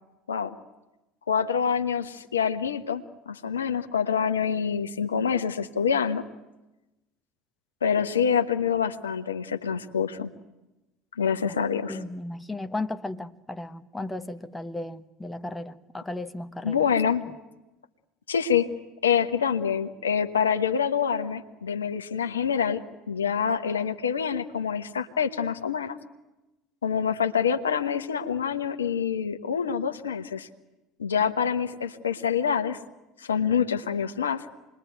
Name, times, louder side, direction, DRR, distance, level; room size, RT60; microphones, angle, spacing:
voice 1, 1.3-6.2 7.8-10.3 11.2-12.0 16.6-17.2 18.3-18.7 19.0-22.8 23.1-26.0 26.8-30.5 31.0-32.8 33.2-34.4, left 7 dB, 75° left, 1.2 m, -26 dB
voice 2, 11.9-16.8, left 2 dB, 10° left, 1.1 m, -35 dB
28.0 x 21.0 x 9.3 m
figure-of-eight pair, 65°, 0 cm